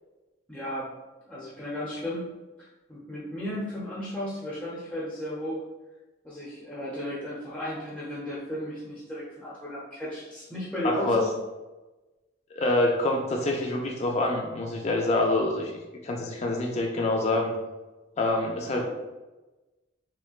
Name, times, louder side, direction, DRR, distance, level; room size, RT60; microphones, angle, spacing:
voice 1, 0.5-0.9 1.3-2.3 2.6-5.6 6.2-11.3 18.8-18.9, equal, 5° left, -9 dB, 0.7 m, -34 dB
voice 2, 10.8-11.2 12.5-15.7 16.0-17.5 18.2-18.8, left 2 dB, 35° left, 1 dB, 0.4 m, -26 dB
5.8 x 2.2 x 2.4 m, 1.1 s
head